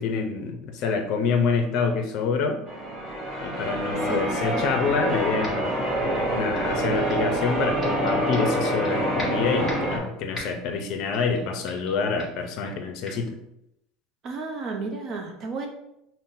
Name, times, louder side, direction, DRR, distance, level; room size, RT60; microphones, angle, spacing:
voice 1, 0.0-2.6 3.4-13.3, left 5 dB, 55° left, 5 dB, 0.5 m, -27 dB
Church bell, 2.7-10.0, right 1 dB, 15° right, 0.9 m, -26 dB
sound 1, 5.4-5.8 6.1-7.3 7.8-8.9 9.2-10.0 10.3-10.7 11.1-11.4 11.7-11.9 12.2-12.4 13.0-13.2, left 2 dB, 15° left, 1.3 m, -39 dB
voice 2, 14.2-15.7, right 4 dB, 35° right, 2 dB, 0.7 m, -32 dB
5.5 x 2.1 x 2.6 m, 0.82 s
supercardioid pair, 145°, 0 cm